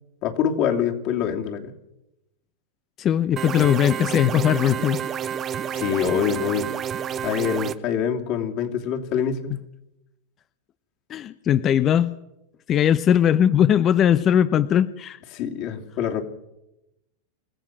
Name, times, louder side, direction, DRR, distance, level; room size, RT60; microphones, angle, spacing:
voice 1, 0.2-1.7 5.7-6.7 7.2-9.6 15.3-16.2, left 8 dB, 45° left, 3 dB, 2.9 m, -25 dB
voice 2, 3.0-5.0 11.1-12.1 12.7-15.2, left 9 dB, 30° left, 15 dB, 0.6 m, -19 dB
sound 1, 3.4-7.7, right 8 dB, 25° right, 1.0 m, -29 dB
28.0 x 15.5 x 6.1 m, 0.91 s
supercardioid pair, 140°, 0 cm